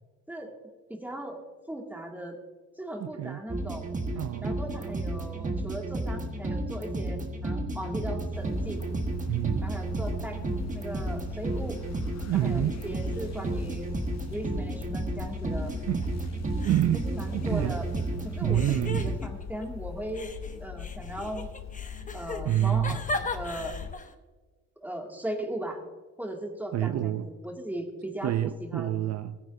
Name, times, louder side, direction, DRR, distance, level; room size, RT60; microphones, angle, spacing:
voice 1, 0.9-1.4 1.7-2.4 2.8-3.9 4.4-8.8 9.6-10.4 10.7-11.8 12.3-14.0 14.3-15.7 16.9-17.8 18.2-18.6 19.0-20.3 20.6-21.5 22.1-23.8 24.8-25.8 26.2-29.0, right 1 dB, 5° right, 2.3 m, -38 dB
voice 2, 3.0-3.4 4.2-4.6 9.3-9.6 12.3-12.8 15.9-16.0 16.6-17.8 18.4-19.1 22.4-23.0 26.7-27.3 28.2-29.4, right 12 dB, 60° right, 0.5 m, -28 dB
sound 1, 3.5-19.2, right 2 dB, 25° right, 1.4 m, -32 dB
sound 2, 8.3-24.0, left 8 dB, 60° left, 0.7 m, -41 dB
sound 3, 15.7-16.3 16.6-18.0 18.5-19.7 20.1-24.1, left 2 dB, 25° left, 1.0 m, -38 dB
16.5 x 9.9 x 2.7 m
cardioid pair, 90°, 30 cm